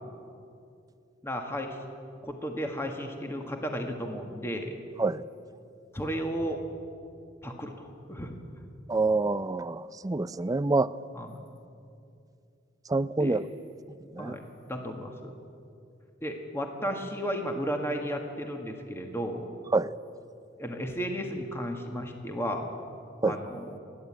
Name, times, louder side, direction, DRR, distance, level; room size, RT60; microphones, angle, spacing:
voice 1, 1.2-1.8 2.2-4.8 5.9-6.6 7.4-8.4 11.1-11.3 13.2-13.4 14.2-15.3 16.2-19.5 20.6-22.7 23.2-23.8, equal, 15° left, 3 dB, 1.6 m, -34 dB
voice 2, 8.9-10.9 12.9-13.5 14.1-14.3 19.7-20.0 23.2-23.4, right 3 dB, 20° right, 16 dB, 0.4 m, -26 dB
29.5 x 11.5 x 8.8 m, 2.5 s
head